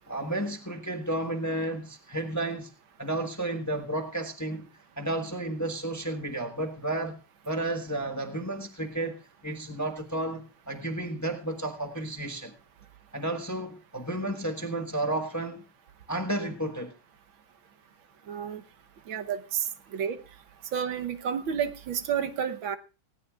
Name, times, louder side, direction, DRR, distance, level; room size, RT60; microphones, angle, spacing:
voice 1, 0.1-2.7 3.0-4.7 5.0-7.1 7.4-9.2 9.4-12.5 13.1-15.6 16.1-16.9, right 1 dB, 10° left, 1.1 m, -32 dB
voice 2, 18.3-18.6 19.1-20.2 20.7-22.8, right 8 dB, 75° right, 1.8 m, -30 dB
19.5 x 16.5 x 2.4 m
omnidirectional pair, 2.2 m